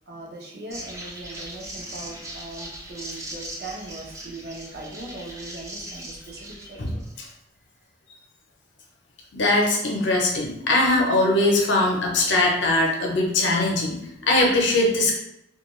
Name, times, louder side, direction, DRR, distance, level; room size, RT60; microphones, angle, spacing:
voice 1, 0.1-7.0 7.3-7.4, right 2 dB, 55° right, -2 dB, 0.6 m, -39 dB
sound 1, 0.7-7.3, right 1 dB, 15° right, 0.4 m, -39 dB
voice 2, 6.8-7.3 9.3-15.1, left 2 dB, 70° left, 0 dB, 0.6 m, -21 dB
2.3 x 2.3 x 3.0 m, 0.85 s
head